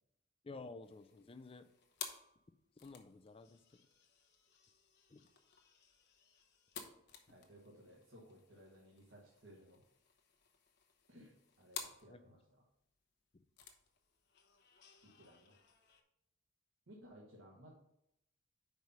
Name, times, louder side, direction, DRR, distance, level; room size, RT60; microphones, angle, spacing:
voice 1, 0.4-1.7 2.8-3.6 5.1-5.2 12.1-12.2, left 3 dB, 25° left, 11 dB, 0.4 m, -52 dB
sound 1, 0.8-16.0, left 7 dB, 55° left, 0.9 m, -55 dB
voice 2, 7.3-9.8 11.1-12.6 15.0-15.6 16.9-17.7, equal, 70° right, -3 dB, 1.2 m, -59 dB
5.3 x 4.7 x 5.5 m, 0.80 s
head